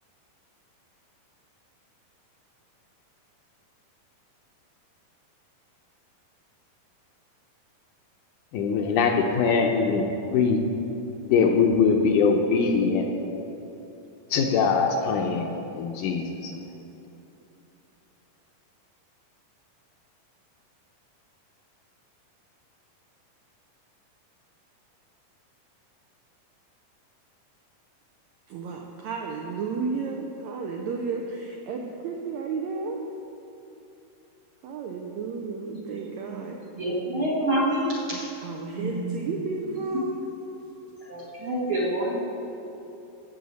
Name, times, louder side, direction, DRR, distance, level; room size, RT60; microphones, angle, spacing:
voice 1, 8.5-10.6 11.3-13.1 14.3-15.5 15.7-16.7, left 5 dB, 75° left, 3 dB, 2.0 m, -22 dB
voice 2, 28.5-33.0 34.6-36.6 38.1-40.2, right 4 dB, 85° right, 1 dB, 1.6 m, -32 dB
voice 3, 36.8-38.3 38.8-38.9 39.2-39.3 41.0-42.2, right 1 dB, 65° right, -6 dB, 1.4 m, -27 dB
16.0 x 7.1 x 4.1 m, 2.9 s
omnidirectional pair, 4.0 m